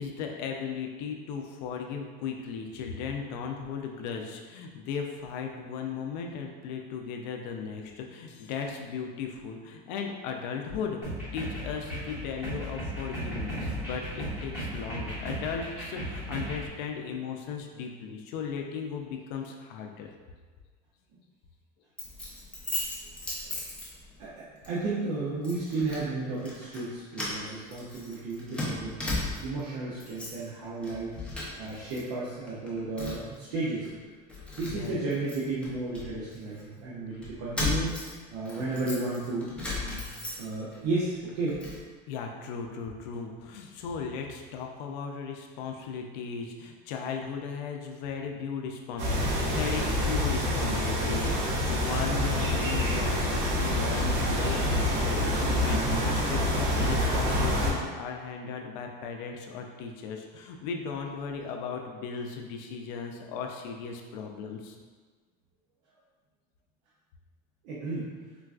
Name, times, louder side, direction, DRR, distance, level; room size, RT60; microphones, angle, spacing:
voice 1, 0.0-20.1 34.6-35.0 42.1-64.8, left 6 dB, 85° left, 2 dB, 0.4 m, -36 dB
sound 1, 11.0-16.7, right 1 dB, 10° right, 1.2 m, -36 dB
Keys jangling, 22.0-24.3 24.6-24.8 25.4-26.1 26.4-26.8 27.1-29.6 29.9-30.5 30.8-32.0 32.3-33.4 33.8-33.9 34.3-36.6 37.2-40.8 41.1-41.8, left 2 dB, 5° left, 0.5 m, -36 dB
voice 2, 24.2-31.1 31.6-33.9 34.5-37.9 38.3-39.5 39.8-41.6 67.6-68.1, right 3 dB, 85° right, -7 dB, 0.7 m, -33 dB
sound 2, 49.0-57.7, left 1 dB, 50° right, 0.8 m, -27 dB
3.8 x 2.4 x 2.3 m, 1.5 s
cardioid pair, 160°, 21 cm